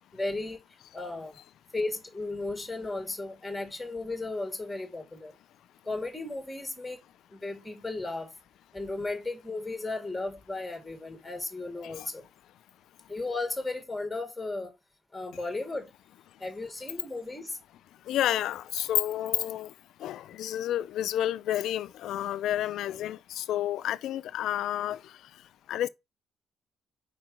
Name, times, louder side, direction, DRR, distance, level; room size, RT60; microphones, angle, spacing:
voice 1, 0.1-0.6 0.9-1.4 1.7-5.4 5.8-7.0 7.3-8.3 8.7-12.2 13.1-14.7 15.1-15.9 16.4-17.6, left 2 dB, 10° left, 2.1 m, -35 dB
voice 2, 18.1-19.7 20.0-25.0 25.7-25.9, left 12 dB, 80° left, 0.4 m, -30 dB
4.8 x 4.4 x 5.1 m
cardioid pair, 90°, 0 cm